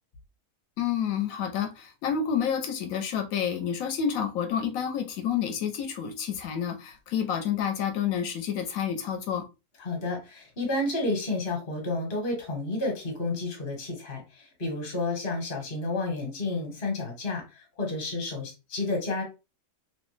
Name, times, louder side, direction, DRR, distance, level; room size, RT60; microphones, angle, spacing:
voice 1, 0.8-9.4, left 8 dB, 75° left, 6 dB, 1.0 m, -29 dB
voice 2, 9.8-19.2, left 2 dB, 40° left, 1 dB, 1.0 m, -31 dB
2.9 x 2.0 x 3.1 m, 0.28 s
omnidirectional pair, 1.5 m